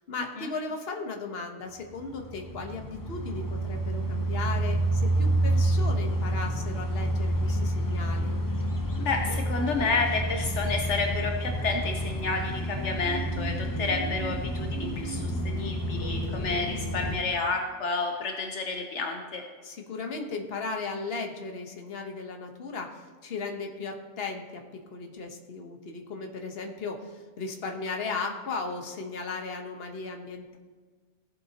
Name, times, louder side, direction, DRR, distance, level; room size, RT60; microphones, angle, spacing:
voice 1, 0.1-8.4 19.6-24.6 24.9-30.6, left 4 dB, 55° left, 3 dB, 1.3 m, -36 dB
sound 1, 1.9-17.2, right 1 dB, 25° left, 0.5 m, -29 dB
voice 2, 9.0-19.4, left 4 dB, 75° left, 3 dB, 1.2 m, -30 dB
sound 2, 12.2-17.3, right 3 dB, 5° left, 3.6 m, -40 dB
16.5 x 7.8 x 2.9 m, 1.5 s
omnidirectional pair, 1.3 m